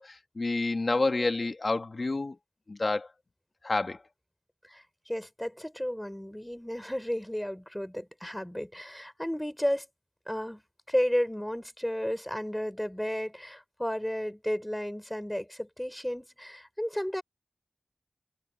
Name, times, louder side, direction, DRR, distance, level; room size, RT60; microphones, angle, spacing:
voice 1, 0.0-2.4 2.7-3.1 3.6-4.0, left 3 dB, 55° left, 2.2 m, -29 dB
voice 2, 4.6-9.9 10.3-10.6 10.9-17.2, equal, 5° left, 6.1 m, -33 dB
wide cardioid pair, 65°, 0 cm